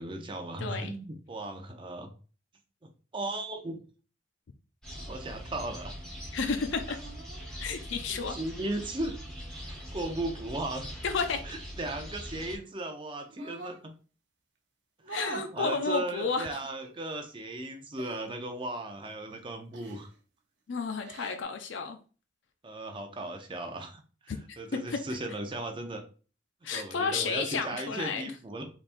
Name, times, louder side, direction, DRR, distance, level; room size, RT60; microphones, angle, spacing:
voice 1, 0.0-2.1 2.8-3.8 5.1-5.9 8.1-9.2 9.7-10.9 11.4-13.9 15.1-20.1 22.6-26.0 26.7-28.7, right 1 dB, 25° right, 0.6 m, -37 dB
voice 2, 0.6-0.9 6.3-7.0 7.6-8.4 11.0-11.4 15.1-16.5 20.7-22.0 24.3-24.6 24.9-25.0 26.6-28.2, left 5 dB, 70° left, 0.5 m, -31 dB
sound 1, 4.8-12.6, equal, 5° left, 1.3 m, -42 dB
sound 2, 5.0-5.2 6.9-7.5 8.8-9.9 12.0-12.7 13.2-13.8 15.0-15.5 16.8-16.9 18.0-18.3 19.7-20.2 20.9-21.4, right 2 dB, 65° right, 0.8 m, -46 dB
4.1 x 3.4 x 2.5 m
head